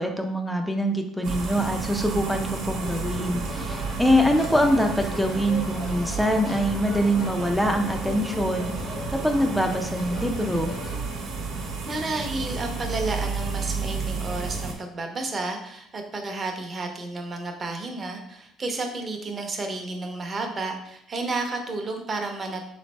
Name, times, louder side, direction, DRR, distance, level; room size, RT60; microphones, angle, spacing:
voice 1, 0.0-10.7, equal, ahead, 3 dB, 0.5 m, -24 dB
sound 1, 1.2-14.7, right 4 dB, 75° right, 1.0 m, -32 dB
sound 2, 2.8-11.1, left 2 dB, 40° left, 0.7 m, -39 dB
voice 2, 11.9-22.6, right 2 dB, 30° right, 4 dB, 0.8 m, -31 dB
3.9 x 3.2 x 4.1 m, 0.76 s
cardioid pair, 120°, 0 cm